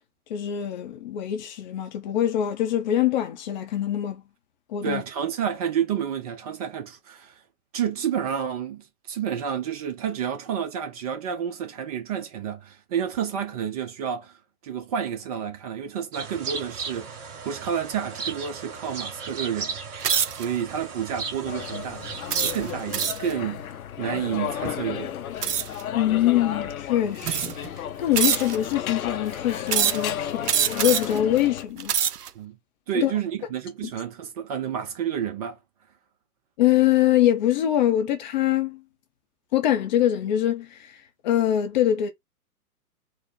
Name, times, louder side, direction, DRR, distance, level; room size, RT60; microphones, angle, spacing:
voice 1, 0.3-4.2 4.7-5.0 25.9-31.9 32.9-33.1 36.6-38.8 39.5-40.8 41.2-42.1, left 12 dB, 30° left, 0.6 m, -23 dB
voice 2, 4.8-7.4 7.7-14.4 14.6-19.8 20.3-22.1 22.4-23.6 24.0-25.1 32.3-32.6 32.9-35.6, right 8 dB, 25° right, 0.6 m, -30 dB
sound 1, 16.1-23.1, right 5 dB, 40° right, 2.3 m, -35 dB
sound 2, 20.0-20.5 21.1-21.4 22.3-23.3 25.4-25.8 26.6-26.7 27.2-27.7 28.1-28.7 29.7-30.1 30.4-31.2 31.7-32.3, right 8 dB, 90° right, 0.5 m, -25 dB
sound 3, 21.5-31.7, left 10 dB, 65° left, 0.7 m, -33 dB
4.3 x 2.0 x 3.7 m
figure-of-eight pair, 120°, 45 cm